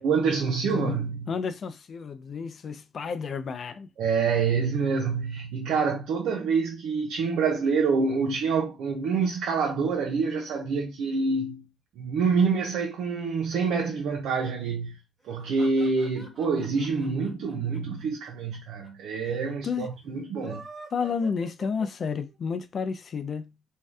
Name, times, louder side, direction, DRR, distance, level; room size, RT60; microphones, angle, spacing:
voice 1, 0.0-1.3 4.0-11.7 12.0-15.0 15.2-20.6, right 5 dB, 85° right, 0.6 m, -26 dB
voice 2, 0.6-1.0 1.3-3.9 19.6-19.9 20.9-23.5, left 6 dB, 50° left, 0.5 m, -31 dB
sound 1, 15.2-18.6 18.8-18.9 19.1-19.2 20.2-22.4, right 2 dB, 20° right, 1.4 m, -46 dB
2.7 x 2.3 x 3.3 m
cardioid pair, 90°, 0 cm